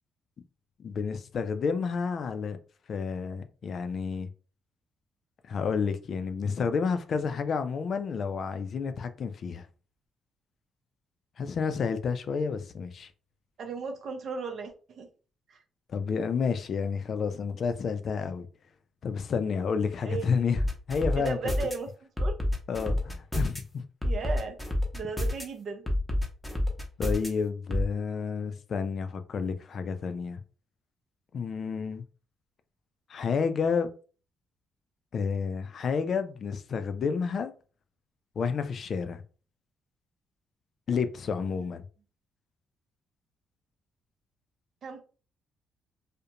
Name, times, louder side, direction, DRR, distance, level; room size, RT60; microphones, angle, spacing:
voice 1, 0.8-2.6 2.9-4.3 5.5-9.7 11.4-13.1 15.9-18.5 19.0-20.6 20.9-21.4 22.7-23.8 27.0-30.4 31.3-32.0 33.1-33.9 35.1-37.5 38.4-39.2 40.9-41.9, left 5 dB, 55° left, 0.3 m, -30 dB
voice 2, 13.6-15.1 15.5-15.6 20.0-20.3 21.2-22.4 24.0-24.6 24.9-25.8 41.5-41.7 44.8-45.0, right 4 dB, 60° right, 0.6 m, -36 dB
sound 1, 20.6-21.7 22.2-23.6 24.0-25.4 25.9-27.3 27.7-27.9, left 1 dB, 5° left, 0.7 m, -28 dB
2.4 x 2.1 x 2.8 m
cardioid pair, 90°, 0 cm